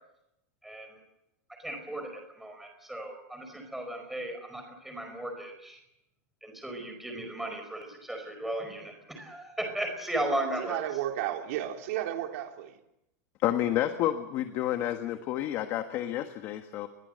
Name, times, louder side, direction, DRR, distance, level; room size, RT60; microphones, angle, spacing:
voice 1, 0.6-1.0 1.6-5.8 6.4-10.8, right 1 dB, ahead, 4 dB, 5.0 m, -36 dB
voice 2, 10.6-12.8, right 12 dB, 55° right, 3 dB, 3.4 m, -33 dB
voice 3, 13.4-16.9, left 12 dB, 30° left, 8 dB, 1.4 m, -30 dB
29.5 x 21.5 x 7.9 m, 0.83 s
supercardioid pair, 180°, 9 cm